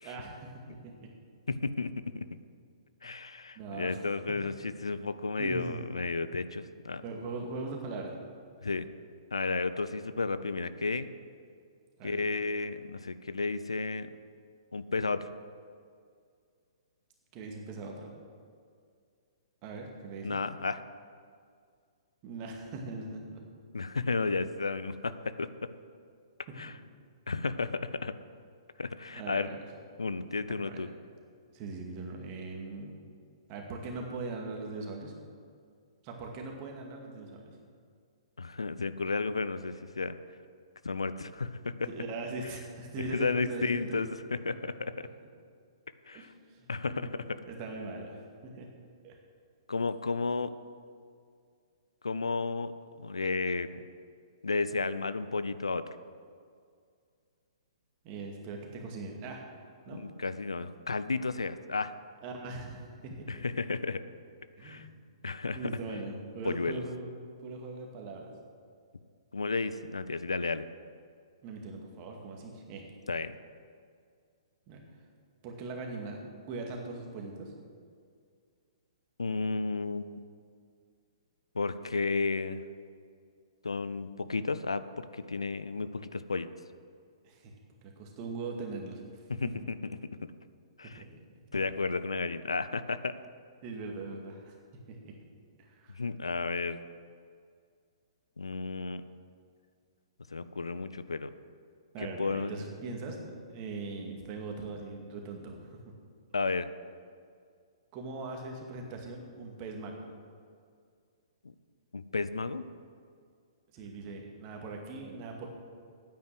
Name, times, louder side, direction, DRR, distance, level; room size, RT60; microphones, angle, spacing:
voice 1, 0.0-1.1 3.6-4.0 4.6-4.7 5.4-5.8 7.0-8.1 12.0-12.3 17.3-18.1 19.6-20.4 22.2-23.4 26.5-26.6 29.1-29.7 30.5-30.8 31.5-32.9 33.5-35.1 36.0-37.6 41.9-44.0 45.0-45.1 46.1-48.7 49.0-49.2 58.0-59.4 59.9-60.0 62.2-63.6 64.6-64.9 65.5-67.1 67.4-68.3 71.4-72.9 74.7-74.8 75.4-77.5 87.2-87.5 87.8-89.0 89.4-89.6 90.8-91.2 93.6-94.5 94.9-95.1 95.6-96.0 101.9-105.7 107.9-110.0 113.7-115.5, right 3 dB, 35° right, 1 dB, 2.2 m, -40 dB
voice 2, 1.5-2.0 3.0-7.0 8.6-8.9 9.3-11.1 12.0-14.1 14.7-15.3 20.2-20.8 23.7-25.7 26.6-26.7 27.3-28.1 28.8-29.5 30.0-30.9 38.4-40.2 40.8-41.9 43.1-45.1 46.1-46.3 46.7-47.4 49.7-50.5 52.0-52.7 53.0-53.8 54.4-55.9 59.9-61.9 63.3-64.0 64.6-64.9 65.2-65.6 66.4-66.8 69.3-70.7 73.1-73.3 79.2-80.1 81.5-82.6 83.6-86.5 89.3-89.5 90.8-91.0 91.5-93.2 96.0-96.8 98.4-99.0 100.3-101.3 102.0-102.5 106.3-106.7 111.4-111.5 111.9-112.6, left 4 dB, 80° left, 13 dB, 0.6 m, -32 dB
9.4 x 9.3 x 7.8 m, 2.2 s
figure-of-eight pair, 120°, 3 cm